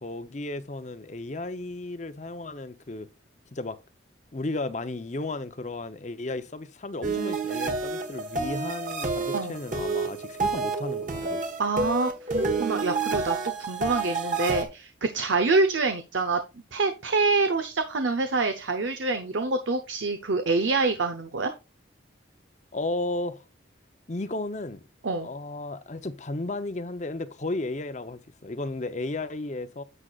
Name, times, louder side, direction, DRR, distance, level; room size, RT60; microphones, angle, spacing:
voice 1, 0.0-3.1 3.5-3.8 4.3-11.5 22.7-23.4 24.1-24.8 25.2-29.8, left 2 dB, 35° left, 0.7 m, -34 dB
sound 1, 7.0-14.6, right 3 dB, 40° right, 1.4 m, -29 dB
voice 2, 11.6-13.4 13.7-16.4 16.7-21.5 25.0-25.3, right 3 dB, 75° right, 0.7 m, -26 dB
9.9 x 8.0 x 2.4 m
head